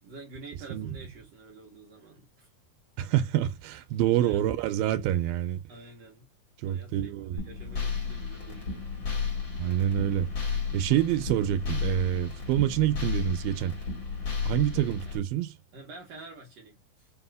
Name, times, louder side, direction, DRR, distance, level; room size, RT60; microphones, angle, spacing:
voice 1, 0.0-2.5 4.2-4.5 5.7-6.3 6.7-9.1 15.1-15.2 15.7-17.1, right 2 dB, 60° right, 1.8 m, -48 dB
voice 2, 3.0-5.6 6.6-7.4 9.6-10.3 10.7-13.7 14.5-15.5, right 12 dB, 90° right, 2.4 m, -27 dB
sound 1, 7.4-15.2, left 5 dB, 45° left, 1.8 m, -33 dB
5.5 x 2.8 x 2.4 m
omnidirectional pair, 4.1 m